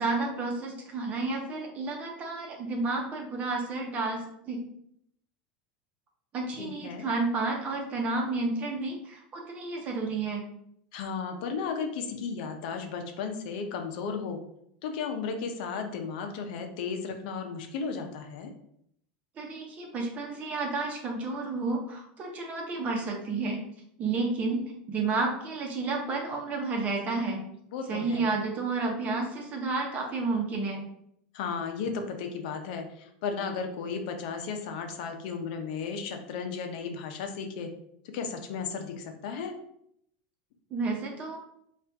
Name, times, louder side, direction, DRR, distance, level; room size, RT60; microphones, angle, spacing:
voice 1, 0.0-4.6 6.3-10.4 19.4-23.6 24.0-24.6 24.9-27.4 27.9-30.8 40.7-41.4, right 3 dB, 30° right, 1 dB, 0.9 m, -31 dB
voice 2, 6.6-7.1 10.9-14.4 14.8-18.5 27.7-28.3 31.3-37.7 38.1-39.6, left 5 dB, 65° left, 5 dB, 0.6 m, -34 dB
4.3 x 2.5 x 3.4 m, 0.72 s
supercardioid pair, 145°, 5 cm